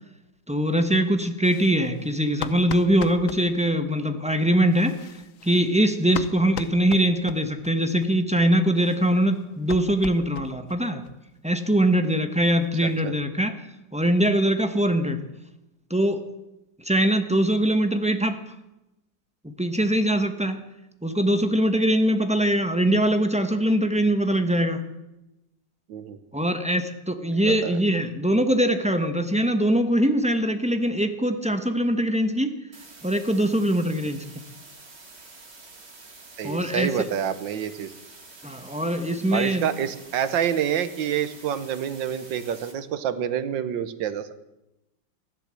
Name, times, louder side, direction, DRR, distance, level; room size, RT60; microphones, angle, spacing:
voice 1, 0.5-4.9 5.4-11.0 11.4-13.5 13.9-15.2 15.9-16.2 16.8-18.4 19.4-20.6 21.0-24.8 26.3-32.5 33.0-34.2 36.4-36.9 38.4-39.7, right 1 dB, 5° right, 6 dB, 0.5 m, -22 dB
sound 1, 1.4-3.4 4.6-7.7 8.0-8.1 8.4-8.5 8.7-10.8 11.0-11.2 11.5-11.6 11.9-12.0 12.3-13.1, left 8 dB, 60° left, 0.9 m, -38 dB
voice 2, 12.8-13.1 25.9-26.2 27.3-27.8 36.4-37.9 39.3-44.4, right 9 dB, 85° right, 12 dB, 1.7 m, -28 dB
sound 2, 32.7-42.7, right 3 dB, 35° right, 2.3 m, -47 dB
15.0 x 11.5 x 7.5 m, 0.94 s
omnidirectional pair, 2.0 m